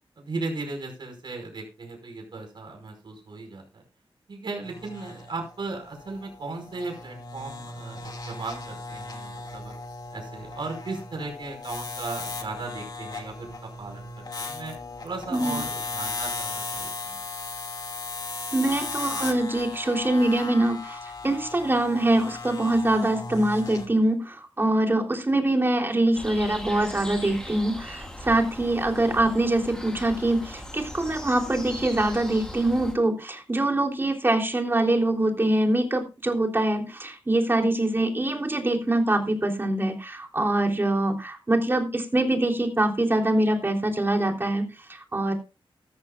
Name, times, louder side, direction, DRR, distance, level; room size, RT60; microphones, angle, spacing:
voice 1, 0.2-3.8 4.3-9.7 10.1-14.8 15.0-17.2, right 3 dB, 60° right, 2 dB, 5.5 m, -36 dB
sound 1, 4.6-23.9, left 3 dB, 45° left, 2.4 m, -37 dB
voice 2, 18.5-45.3, right 1 dB, 25° right, 2 dB, 3.5 m, -24 dB
sound 2, 26.1-33.0, left 1 dB, 10° left, 3.9 m, -39 dB
15.0 x 13.5 x 2.5 m, 0.30 s
wide cardioid pair, 115°, 9 cm